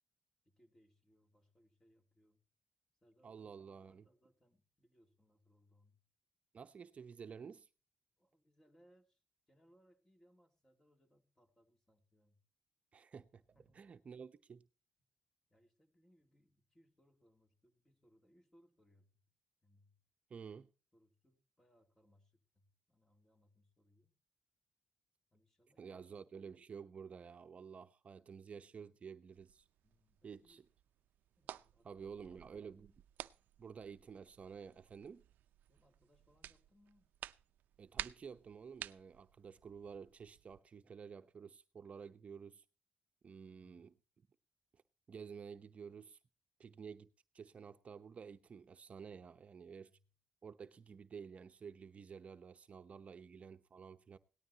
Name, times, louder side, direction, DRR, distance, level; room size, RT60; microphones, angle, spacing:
voice 1, 0.4-2.4 3.0-6.0 8.2-12.4 13.5-13.8 15.5-19.2 19.6-20.0 20.9-24.1 25.3-26.1 29.8-30.6 31.4-33.0 35.7-37.1 37.8-38.0 43.4-43.9 49.8-50.1, equal, 15° left, 3.0 m, -72 dB
voice 2, 3.2-4.1 6.5-7.7 12.9-13.4 13.7-14.7 20.3-20.7 25.8-29.7 30.2-30.6 31.8-32.9 33.6-35.2 37.8-42.6 43.2-44.0 44.7-44.8 45.1-46.2 46.6-49.9 50.4-54.2, right 6 dB, 50° right, 0.8 m, -51 dB
sound 1, 29.3-40.6, right 12 dB, 85° right, 0.5 m, -53 dB
18.0 x 12.5 x 2.9 m
cardioid pair, 80°, 3 cm